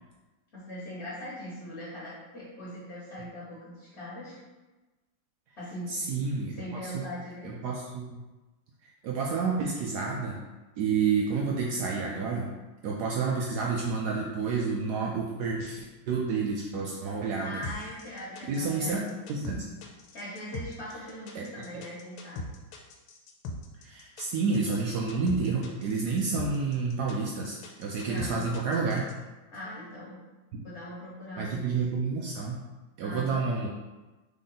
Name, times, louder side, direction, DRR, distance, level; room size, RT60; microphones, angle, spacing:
voice 1, 0.5-4.4 5.6-6.2 6.6-7.5 17.4-19.2 20.1-22.4 28.0-28.5 29.5-30.2 30.6-31.7 33.0-33.6, equal, 35° left, -8 dB, 1.3 m, -41 dB
voice 2, 5.9-7.1 7.4-8.2 8.8-10.4 10.8-12.5 12.8-17.6 18.5-19.0 19.3-19.7 21.3-21.4 23.8-29.1 30.5-30.6 31.4-32.6 33.0-33.7, right 4 dB, 85° right, -2 dB, 0.8 m, -30 dB
sound 1, 17.6-29.1, left 2 dB, 90° left, 1.6 m, -40 dB
3.7 x 3.7 x 3.9 m, 1.2 s
omnidirectional pair, 2.3 m